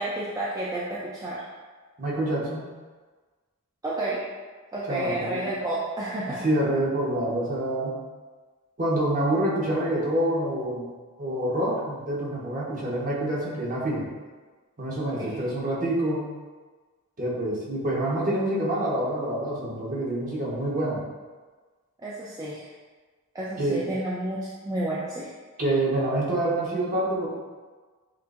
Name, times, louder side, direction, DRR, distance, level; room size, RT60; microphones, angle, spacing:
voice 1, 0.0-1.4 3.8-4.2 4.7-6.4 15.2-15.4 22.0-22.6 23.3-24.4 24.7-25.3, right 1 dB, 15° right, -7 dB, 0.5 m, -30 dB
voice 2, 2.0-2.7 4.9-5.4 6.3-7.9 8.8-10.9 11.2-14.0 14.8-16.2 17.2-21.0 23.6-23.8 25.6-27.3, right 1 dB, 40° right, -6 dB, 1.2 m, -26 dB
7.3 x 2.5 x 2.5 m, 1.4 s
head